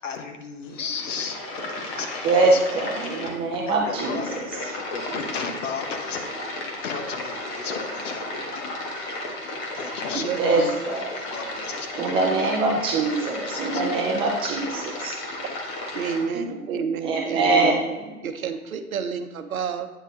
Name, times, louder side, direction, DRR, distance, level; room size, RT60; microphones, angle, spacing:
voice 1, 0.0-1.4 1.9-2.6 3.7-4.4 4.7-6.3 6.8-8.8 9.8-10.8 11.1-12.2 13.2-14.1, left 5 dB, 55° left, 5 dB, 1.2 m, -34 dB
sound 1, 0.6-16.2, left 2 dB, 35° left, 1.5 m, -34 dB
voice 2, 2.2-4.4 10.4-11.1 12.0-15.1 16.3-16.8 17.0-17.8, right 3 dB, 10° right, -1 dB, 0.5 m, -23 dB
voice 3, 10.1-10.8 15.9-17.8 18.2-19.9, right 6 dB, 70° right, 8 dB, 0.9 m, -29 dB
9.0 x 4.1 x 3.9 m, 1.1 s
figure-of-eight pair, 120°, 44 cm